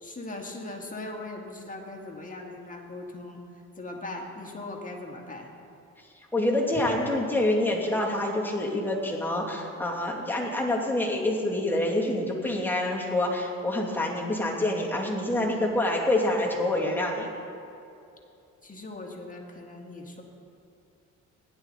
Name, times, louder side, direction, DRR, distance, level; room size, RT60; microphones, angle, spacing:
voice 1, 0.0-3.4 3.8-5.5 18.6-20.2, left 2 dB, 25° left, 0 dB, 2.0 m, -39 dB
voice 2, 6.3-17.3, left 1 dB, 5° left, -3 dB, 2.6 m, -27 dB
16.5 x 11.0 x 4.1 m, 2.7 s
cardioid pair, 90°, 30 cm